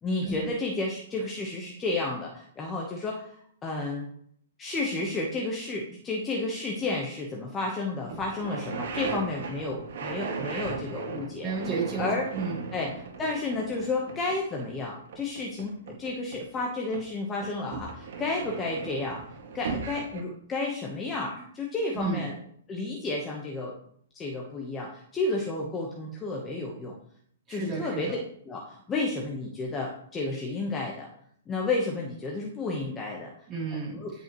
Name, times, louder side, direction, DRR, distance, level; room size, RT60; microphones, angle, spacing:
voice 1, 0.0-3.3 3.6-4.1 4.6-11.5 12.0-12.2 12.7-12.9 13.2-19.2 19.5-22.3 22.7-23.7 24.1-26.9 27.5-28.2 28.4-31.1 31.5-33.3 33.9-34.1, left 2 dB, 15° left, -1 dB, 1.1 m, -31 dB
sound 1, 7.7-7.8 8.1-16.6 16.9-20.2, right 5 dB, 60° right, 2.0 m, -37 dB
voice 2, 11.4-12.6 21.9-22.2 27.5-28.2 33.5-34.0, right 4 dB, 20° right, -4 dB, 3.1 m, -32 dB
15.5 x 5.5 x 3.1 m, 0.64 s
hypercardioid pair, 160°, 0 cm